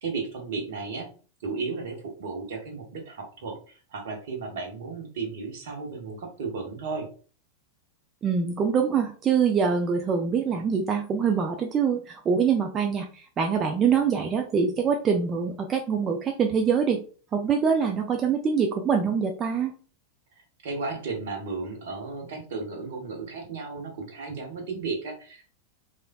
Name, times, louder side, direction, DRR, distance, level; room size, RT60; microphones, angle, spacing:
voice 1, 0.0-1.1 1.4-7.1 20.6-25.5, right 4 dB, 55° right, 2 dB, 0.8 m, -34 dB
voice 2, 8.2-17.0 17.3-19.7, right 6 dB, 25° right, 3 dB, 0.3 m, -24 dB
3.2 x 2.4 x 2.2 m, 0.39 s
figure-of-eight pair, 90°, 0 cm